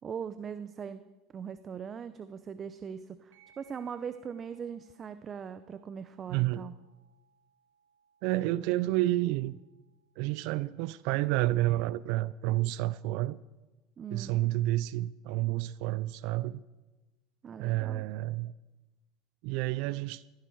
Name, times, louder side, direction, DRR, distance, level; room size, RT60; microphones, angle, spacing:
voice 1, 0.0-1.0 1.3-6.7 14.0-14.4 17.4-18.1, right 7 dB, 35° right, 12 dB, 0.7 m, -40 dB
sound 1, 3.3-12.3, right 7 dB, 85° right, 3.6 m, -69 dB
voice 2, 6.3-6.7 8.2-9.6 10.2-13.4 14.1-16.6 17.6-18.5 19.4-20.2, right 16 dB, 65° right, 18 dB, 0.4 m, -30 dB
15.5 x 15.5 x 4.6 m, 1.1 s
hypercardioid pair, 95°, 0 cm